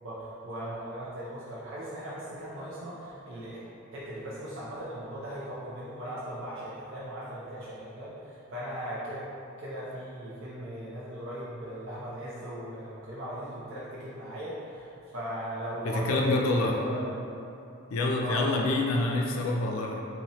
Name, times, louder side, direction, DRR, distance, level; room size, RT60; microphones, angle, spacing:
voice 1, 0.0-3.6 3.9-9.2 9.6-17.1 18.2-18.5 18.9-19.6, equal, 65° right, -7 dB, 0.6 m, -38 dB
voice 2, 16.0-16.7 17.9-20.0, left 2 dB, 85° left, 0 dB, 0.4 m, -26 dB
4.0 x 2.7 x 2.9 m, 2.7 s
head